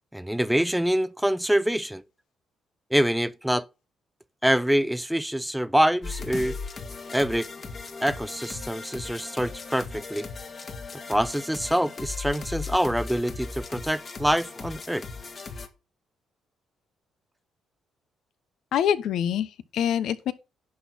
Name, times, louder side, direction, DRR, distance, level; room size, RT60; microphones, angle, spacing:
voice 1, 0.1-2.0 2.9-3.7 4.4-6.6 7.1-7.5 8.0-10.3 11.1-15.0, equal, 5° right, 0.6 m, -25 dB
sound 1, 6.0-15.7, left 4 dB, 40° left, 1.9 m, -38 dB
voice 2, 18.7-20.3, left 9 dB, 75° left, 1.0 m, -25 dB
11.0 x 4.3 x 7.1 m
cardioid pair, 90°, 0 cm